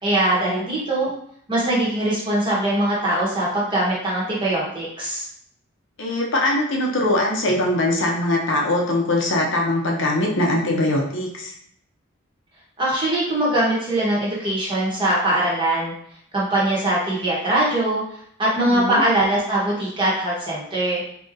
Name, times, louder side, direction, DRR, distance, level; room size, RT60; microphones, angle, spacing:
voice 1, 0.0-1.1 1.5-5.2 12.8-15.9 16.3-18.0 18.4-21.0, right 1 dB, 20° right, -6 dB, 1.0 m, -21 dB
voice 2, 6.0-11.5 18.6-19.0, left 1 dB, 55° left, -1 dB, 0.6 m, -22 dB
3.8 x 2.8 x 2.6 m, 0.66 s
head